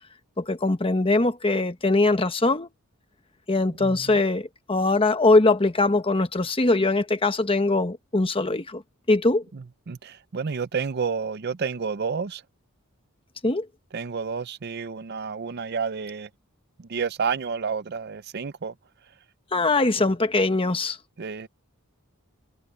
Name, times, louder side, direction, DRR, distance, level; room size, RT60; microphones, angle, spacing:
voice 1, 0.4-2.7 3.5-8.8 9.1-9.4 13.4-13.7 19.5-21.0, left 2 dB, 25° left, 1.1 m, -22 dB
voice 2, 9.9-12.4 13.9-16.3 16.9-18.7 21.2-21.5, right 5 dB, 50° right, 0.5 m, -30 dB
head